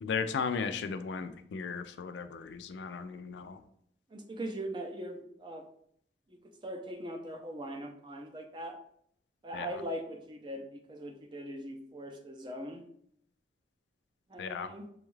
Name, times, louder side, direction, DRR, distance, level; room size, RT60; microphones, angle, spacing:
voice 1, 0.0-3.6 9.5-9.7 14.4-14.7, left 5 dB, 70° left, 10 dB, 0.3 m, -36 dB
voice 2, 4.1-5.6 6.3-6.4 6.6-8.8 9.4-12.8 14.3-14.9, right 1 dB, 25° right, 3 dB, 0.5 m, -40 dB
6.1 x 2.3 x 3.1 m, 0.69 s
head